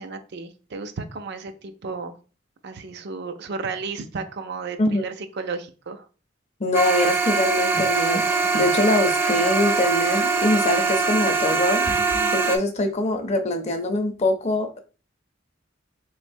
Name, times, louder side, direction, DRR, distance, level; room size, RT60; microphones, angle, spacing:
voice 1, 0.0-2.2 2.6-6.0, right 4 dB, 60° right, 9 dB, 0.5 m, -33 dB
voice 2, 6.6-11.9 12.3-14.8, left 1 dB, 35° left, 5 dB, 0.6 m, -23 dB
sound 1, 6.7-12.6, right 4 dB, 10° right, 0.5 m, -22 dB
Brass instrument, 7.2-11.6, left 6 dB, 80° left, 0.7 m, -38 dB
3.9 x 3.2 x 2.6 m, 0.35 s
head